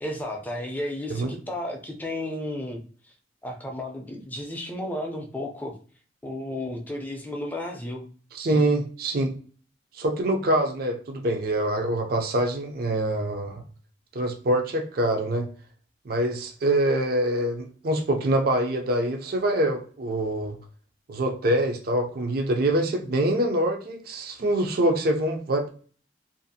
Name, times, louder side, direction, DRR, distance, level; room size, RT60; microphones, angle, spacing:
voice 1, 0.0-2.8 3.4-5.7 6.2-8.1 8.5-8.7, left 1 dB, 10° left, 1 dB, 0.4 m, -33 dB
voice 2, 8.3-9.3 9.9-13.6 14.1-15.5 16.0-20.6 21.1-25.7, right 1 dB, 50° right, 3 dB, 0.4 m, -25 dB
2.5 x 2.4 x 2.6 m, 0.42 s
head